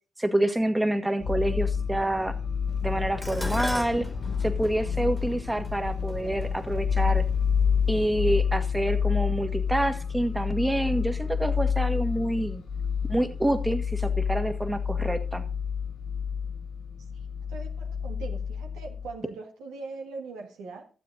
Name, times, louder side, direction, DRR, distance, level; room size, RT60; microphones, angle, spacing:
voice 1, 0.2-2.3 2.8-4.1 4.4-7.3 7.9-12.6 13.1-15.4, right 1 dB, 15° right, 1.6 m, -27 dB
sound 1, 1.2-19.1, left 6 dB, 85° left, 2.0 m, -29 dB
sound 2, 2.7-8.4, left 6 dB, 60° left, 0.8 m, -45 dB
Dishes pots and pans, 3.2-7.6 8.5-8.9 9.2-10.1 10.3-10.4, equal, 10° left, 1.8 m, -39 dB
voice 2, 17.5-20.9, right 4 dB, 90° right, 1.7 m, -40 dB
12.5 x 7.6 x 4.0 m
supercardioid pair, 50°, 0 cm